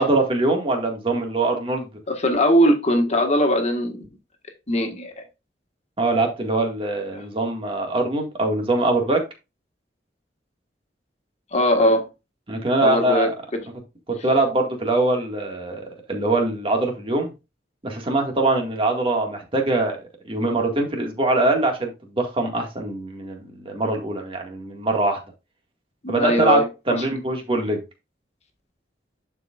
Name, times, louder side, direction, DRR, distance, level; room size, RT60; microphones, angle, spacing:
voice 1, 0.0-1.9 6.0-9.2 12.5-13.3 14.1-17.3 17.8-25.2 26.1-27.8, right 2 dB, 30° right, 1.9 m, -23 dB
voice 2, 2.1-4.1 4.7-5.2 11.5-12.1 12.8-13.6 26.0-26.6, equal, 40° left, 1.6 m, -20 dB
11.0 x 4.8 x 2.4 m
head